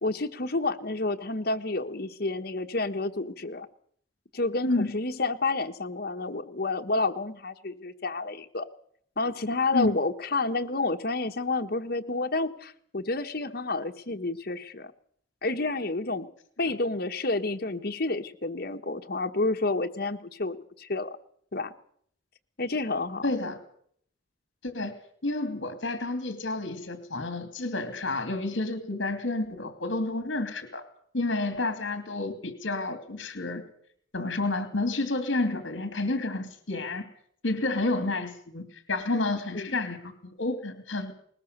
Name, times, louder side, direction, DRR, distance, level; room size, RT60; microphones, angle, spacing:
voice 1, 0.0-3.7 4.3-8.7 9.2-14.9 15.4-16.3 16.6-21.2 21.5-21.7 22.6-23.3 39.5-39.8, left 3 dB, 50° left, 4 dB, 1.3 m, -30 dB
voice 2, 4.6-4.9 9.7-9.9 23.2-23.6 24.6-24.9 25.2-30.8 31.1-33.6 34.1-37.1 37.4-41.1, left 2 dB, 70° left, 9 dB, 2.6 m, -30 dB
20.5 x 19.5 x 6.7 m, 0.64 s
head